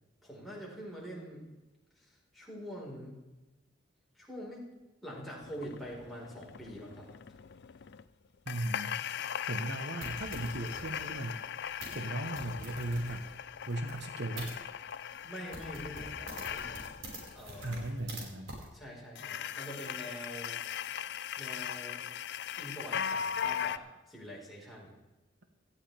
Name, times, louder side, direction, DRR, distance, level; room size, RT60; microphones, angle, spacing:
voice 1, 0.2-1.5 2.0-3.2 4.1-4.7 5.0-7.1 15.2-16.9 17.3-18.1 18.7-20.5 21.4-22.0 22.6-24.9, equal, ahead, -5 dB, 4.6 m, -45 dB
sound 1, 5.4-8.0 8.5-18.0 19.2-23.8, left 8 dB, 60° left, 0.5 m, -39 dB
voice 2, 8.5-9.0 9.5-11.4 11.9-13.3 13.7-14.6 17.6-18.6, right 1 dB, 60° right, 6 dB, 1.2 m, -37 dB
sound 2, 10.0-14.5 15.1-15.3 15.5-18.2 18.5-18.6, right 1 dB, 75° right, 5.2 m, -47 dB
17.5 x 14.0 x 3.5 m, 1.1 s
head